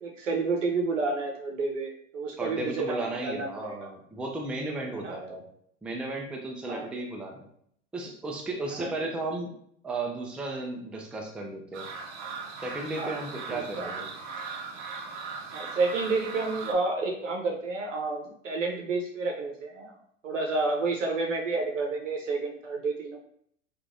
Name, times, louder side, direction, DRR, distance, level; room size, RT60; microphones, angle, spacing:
voice 1, 0.0-3.9 4.9-5.2 6.7-6.9 8.8-9.1 13.0-13.1 13.5-13.9 15.5-19.9 20.2-23.2, right 3 dB, 90° right, 0 dB, 0.8 m, -30 dB
voice 2, 2.4-5.4 5.8-7.5 7.9-9.5 9.8-11.9 12.6-14.1, right 2 dB, 5° right, 0 dB, 0.3 m, -34 dB
sound 1, 11.7-16.7, right 4 dB, 50° right, 0.7 m, -39 dB
3.0 x 2.4 x 2.5 m, 0.66 s
hypercardioid pair, 90°, 36 cm